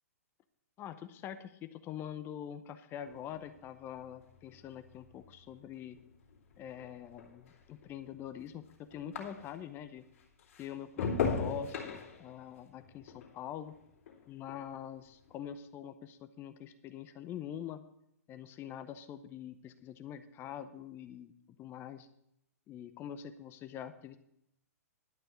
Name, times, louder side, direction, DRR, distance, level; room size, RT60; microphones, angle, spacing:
voice 1, 0.8-6.0 6.6-10.1 10.6-13.7 14.3-17.8 18.3-21.3 21.6-22.1 22.7-24.2, left 9 dB, 25° left, 10 dB, 0.7 m, -45 dB
sound 1, 3.0-9.8 10.1-14.7 15.0-15.5, left 5 dB, 55° left, 2.8 m, -40 dB
11.5 x 5.6 x 7.8 m, 0.77 s
figure-of-eight pair, 115°, 9 cm